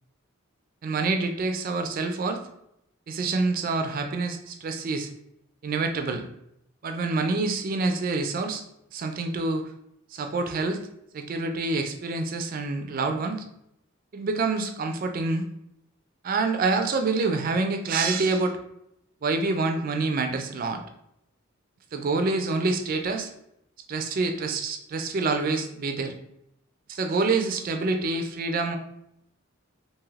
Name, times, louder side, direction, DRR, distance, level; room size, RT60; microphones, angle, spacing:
voice 1, 0.8-2.4 3.1-5.1 5.6-6.2 6.8-8.6 8.9-9.6 10.1-10.8 11.1-13.4 14.1-15.5 16.2-18.6 19.2-20.8 21.9-23.3 23.9-26.1 26.9-28.8, right 3 dB, 40° right, 6 dB, 0.3 m, -27 dB
2.6 x 2.4 x 3.1 m, 0.79 s
head